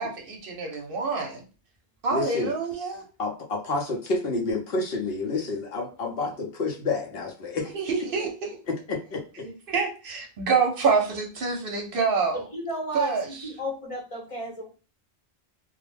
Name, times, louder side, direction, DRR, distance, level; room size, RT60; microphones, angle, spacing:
voice 1, 0.0-1.4 2.0-3.0 7.7-8.5 9.4-12.4 12.9-13.5, right 4 dB, 60° right, 1 dB, 0.8 m, -27 dB
voice 2, 2.1-2.5 3.2-7.7 8.9-9.2, left 3 dB, 65° left, 0 dB, 0.8 m, -29 dB
voice 3, 12.3-14.7, right 1 dB, 35° left, -1 dB, 0.8 m, -33 dB
2.4 x 2.1 x 3.1 m, 0.35 s
omnidirectional pair, 1.1 m